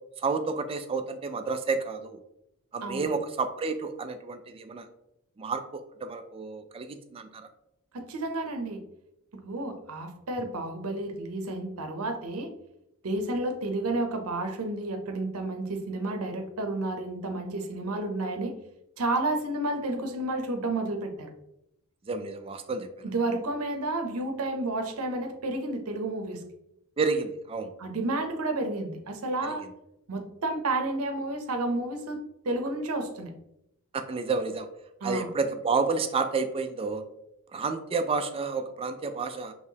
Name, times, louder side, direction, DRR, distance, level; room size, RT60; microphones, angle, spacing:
voice 1, 0.2-2.2 2.7-4.9 5.4-7.5 22.1-22.9 27.0-27.7 29.4-29.5 33.9-34.7 35.0-37.0 37.5-39.5, right 4 dB, 25° right, 9 dB, 0.3 m, -30 dB
voice 2, 7.9-8.8 9.4-12.5 13.0-18.5 19.0-21.3 23.0-26.4 27.8-29.6 30.1-32.2 32.4-33.3 35.0-35.3, right 2 dB, 70° right, 4 dB, 0.7 m, -31 dB
4.6 x 3.0 x 2.8 m, 0.82 s
head